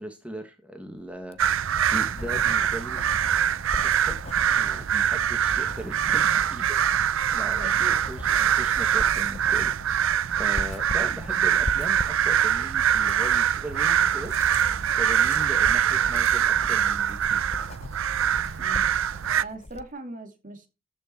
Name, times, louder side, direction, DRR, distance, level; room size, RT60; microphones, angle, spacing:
voice 1, 0.0-3.0 3.8-4.2 4.5-6.8 7.1-14.3 14.7-17.4, equal, 5° right, 1.7 m, -39 dB
Writing, 1.1-19.9, left 2 dB, 30° left, 0.6 m, -40 dB
sound 1, 1.4-19.4, right 9 dB, 65° right, 0.5 m, -24 dB
voice 2, 7.6-8.0 18.6-18.9 19.4-20.7, right 2 dB, 40° right, 2.5 m, -39 dB
sound 2, 13.9-16.8, left 2 dB, 10° left, 2.8 m, -46 dB
13.5 x 6.5 x 4.5 m
head